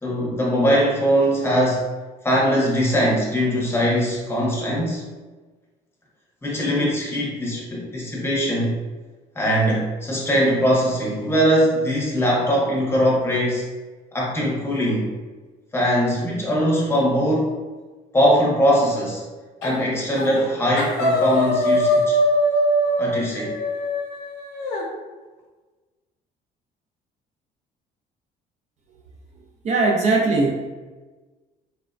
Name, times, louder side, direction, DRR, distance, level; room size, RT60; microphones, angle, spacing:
voice 1, 0.0-1.9 2.2-5.0 6.4-8.8 9.4-13.6 14.1-15.1 15.7-17.5 18.1-19.2 19.6-22.2 23.0-23.5, equal, 15° left, -4 dB, 0.7 m, -21 dB
sound 1, 19.6-19.9 20.1-20.5 20.8-24.8, equal, 90° left, 0.7 m, -22 dB
voice 2, 29.6-30.5, right 3 dB, 45° right, 0 dB, 0.4 m, -19 dB
3.1 x 2.0 x 2.4 m, 1.3 s
cardioid pair, 110°, 17 cm